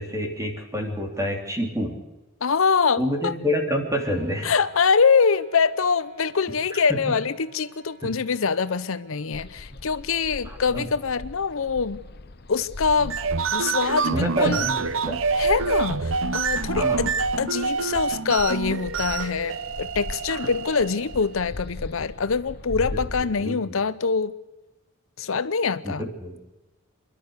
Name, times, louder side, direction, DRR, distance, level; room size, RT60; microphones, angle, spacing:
voice 1, 0.0-2.0 3.0-4.5 6.9-7.0 8.0-8.1 10.4-10.9 14.1-15.2 16.7-17.0 20.3-20.5 22.9-23.0 23.4-23.5 25.8-26.4, equal, 15° right, 2 dB, 3.3 m, -28 dB
voice 2, 2.4-3.3 4.4-12.0 12.5-13.2 13.5-14.7 15.4-24.3 25.2-26.0, left 5 dB, 70° left, 14 dB, 0.7 m, -24 dB
Wind instrument woodwind instrument, 3.9-9.2, right 2 dB, 45° right, 6.1 m, -53 dB
sound 1, 9.3-23.2, left 2 dB, 50° left, 1.0 m, -39 dB
sound 2, 13.0-21.3, right 5 dB, 65° right, 0.8 m, -26 dB
28.0 x 11.5 x 8.1 m, 1.1 s
head